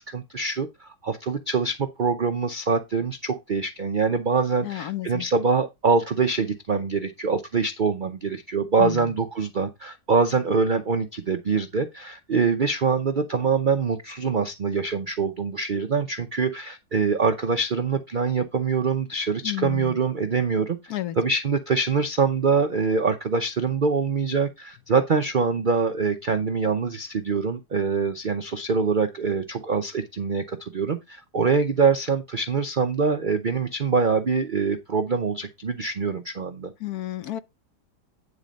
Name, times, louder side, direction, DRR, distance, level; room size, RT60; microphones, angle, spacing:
voice 1, 0.0-20.8 21.2-36.7, right 5 dB, 75° right, 0.4 m, -24 dB
voice 2, 4.6-5.2 8.8-9.1 19.4-20.0 20.9-21.2 36.8-37.4, left 14 dB, 65° left, 1.1 m, -31 dB
9.7 x 4.2 x 5.1 m
omnidirectional pair, 1.9 m